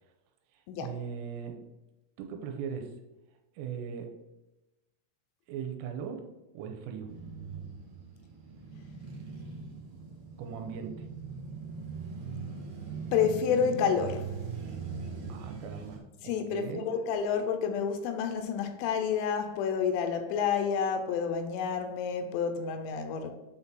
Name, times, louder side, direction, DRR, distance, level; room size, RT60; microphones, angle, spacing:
voice 1, 0.5-1.7 2.2-3.0 3.6-4.1 5.5-6.2 6.5-7.1 10.4-11.1 15.3-16.9, right 7 dB, 90° right, 5 dB, 3.3 m, -39 dB
Male speech man speaking / Motorcycle / Idling, 7.1-16.0, right 5 dB, 60° right, 2.3 m, -40 dB
voice 2, 13.1-14.3 16.2-23.3, left 7 dB, 80° left, 7 dB, 3.2 m, -29 dB
8.8 x 4.1 x 3.8 m, 1.0 s
omnidirectional pair, 5.9 m